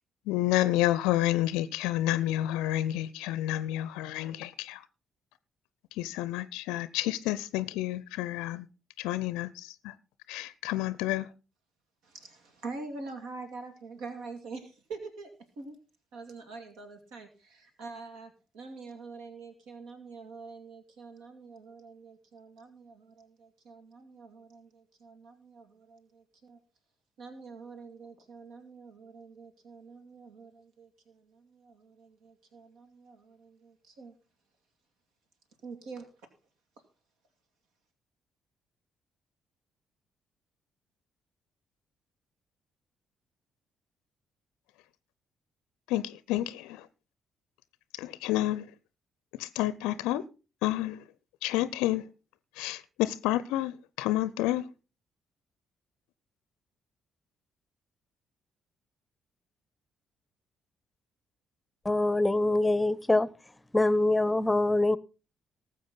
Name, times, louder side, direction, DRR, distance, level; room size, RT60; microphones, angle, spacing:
voice 1, 0.3-4.8 5.9-8.7 9.0-9.9 10.3-11.3 45.9-46.9 47.9-48.7 49.4-50.2 50.6-51.0 51.4-52.0 52.6-54.7, left 15 dB, 70° left, 0.5 m, -30 dB
voice 2, 12.0-15.8 16.1-26.6 27.2-34.1 35.6-36.1, right 4 dB, 65° right, 2.3 m, -46 dB
voice 3, 61.8-63.3 63.7-65.0, left 2 dB, 15° left, 0.8 m, -24 dB
19.0 x 7.7 x 3.9 m
figure-of-eight pair, 45°, 0 cm